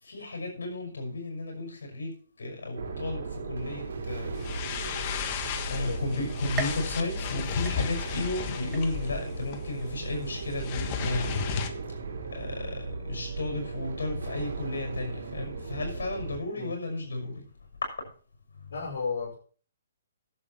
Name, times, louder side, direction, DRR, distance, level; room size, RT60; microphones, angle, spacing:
voice 1, 0.0-4.4 5.7-11.5 12.3-17.4 18.6-18.7, left 2 dB, 85° left, 3 dB, 6.0 m, -34 dB
sound 1, 2.8-16.4, right 3 dB, 75° right, 3.5 m, -37 dB
sound 2, 4.3-11.7, left 7 dB, 35° left, 1.4 m, -35 dB
voice 2, 5.6-6.0 16.5-16.7 18.7-19.3, left 5 dB, 70° left, -3 dB, 5.2 m, -34 dB
sound 3, 6.6-8.3 8.7-9.3 9.8-9.9 10.9-11.0, right 7 dB, 15° right, 1.2 m, -40 dB
11.0 x 8.1 x 5.9 m, 0.43 s
hypercardioid pair, 150°, 0 cm